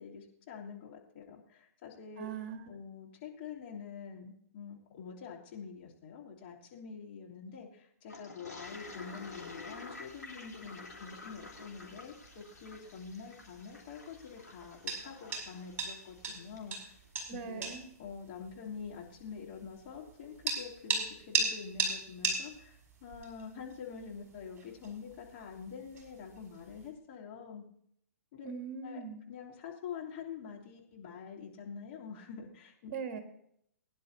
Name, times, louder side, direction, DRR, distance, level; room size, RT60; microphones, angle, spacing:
voice 1, 0.0-2.3 2.7-16.8 17.3-17.7 18.0-27.6 28.3-28.5 28.8-32.9, left 6 dB, 45° left, -3 dB, 3.0 m, -46 dB
voice 2, 2.2-2.6 17.3-17.9 28.4-29.2 32.9-33.2, right 6 dB, 40° right, 7 dB, 1.7 m, -40 dB
Toilet flush, 8.1-16.7, left 3 dB, 85° left, 3.3 m, -50 dB
sound 1, 8.6-26.9, right 4 dB, 20° right, 5.1 m, -41 dB
21.5 x 10.5 x 2.7 m, 0.68 s
figure-of-eight pair, 115°, 9 cm